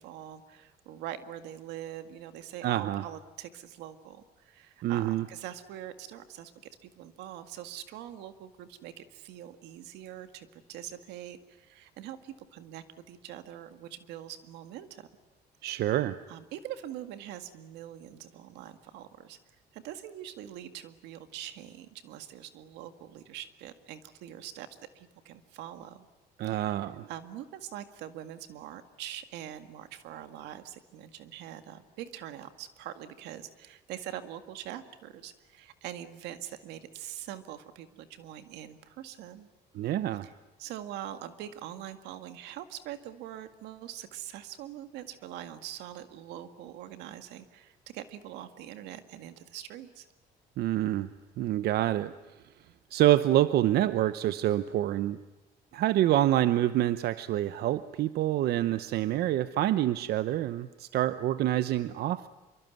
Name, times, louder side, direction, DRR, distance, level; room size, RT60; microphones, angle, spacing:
voice 1, 0.0-6.5 6.8-15.1 16.3-19.4 19.7-24.7 24.9-26.1 26.4-39.5 40.2-40.3 40.6-50.1, right 11 dB, 90° right, 10 dB, 1.9 m, -43 dB
voice 2, 2.6-3.0 4.8-5.2 15.6-16.2 26.4-27.1 39.7-40.3 50.6-52.1 52.9-55.2 55.7-62.3, right 13 dB, 70° right, 13 dB, 0.8 m, -27 dB
26.0 x 23.5 x 9.3 m, 1.1 s
cardioid pair, 110°, 17 cm